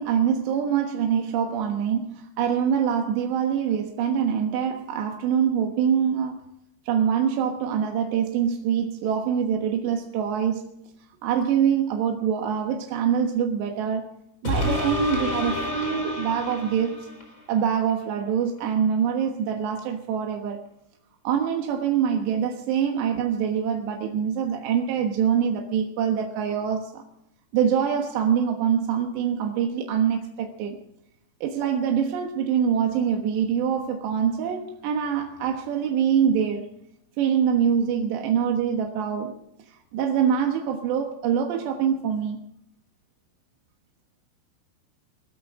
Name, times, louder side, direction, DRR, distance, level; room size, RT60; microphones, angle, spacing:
voice 1, 0.0-6.4 6.9-10.7 11.2-14.0 14.4-17.0 17.5-20.6 21.3-27.0 27.5-30.8 31.4-36.7 37.2-39.4 39.7-42.4, right 8 dB, 90° right, 3.6 m, -24 dB
sound 1, 14.4-17.4 17.9-18.0, left 1 dB, 20° left, 4.5 m, -29 dB
23.0 x 13.0 x 3.7 m
omnidirectional pair, 4.8 m